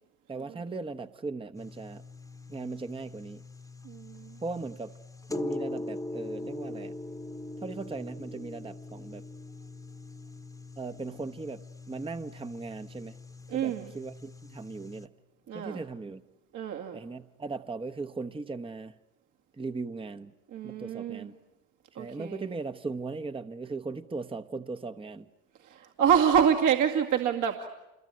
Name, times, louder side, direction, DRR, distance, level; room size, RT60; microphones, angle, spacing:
voice 1, 0.3-2.0 2.5-3.4 4.4-4.9 5.3-7.0 7.6-9.2 10.8-13.2 13.5-15.1 15.5-16.2 16.9-19.0 19.5-20.3 20.6-21.3 22.0-25.3, right 3 dB, 15° right, 8 dB, 1.1 m, -38 dB
sound 1, 1.5-15.1, left 2 dB, 10° left, 1.3 m, -42 dB
voice 2, 3.8-4.4 13.5-13.9 15.5-15.8 16.5-17.0 20.5-21.3 22.0-22.4 25.6-27.7, right 8 dB, 55° right, 3 dB, 2.2 m, -27 dB
27.5 x 22.0 x 9.7 m, 0.97 s
hypercardioid pair, 65°, 36 cm